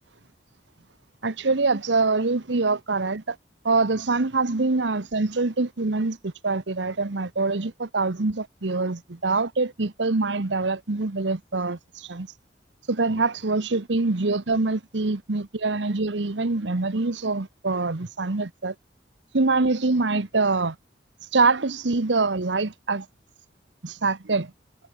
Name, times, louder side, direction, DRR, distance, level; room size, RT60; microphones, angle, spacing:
voice 1, 1.2-3.4 3.6-12.3 12.9-18.7 19.3-20.8 21.3-23.1 23.8-24.5, right 3 dB, 85° right, 1.1 m, -24 dB
head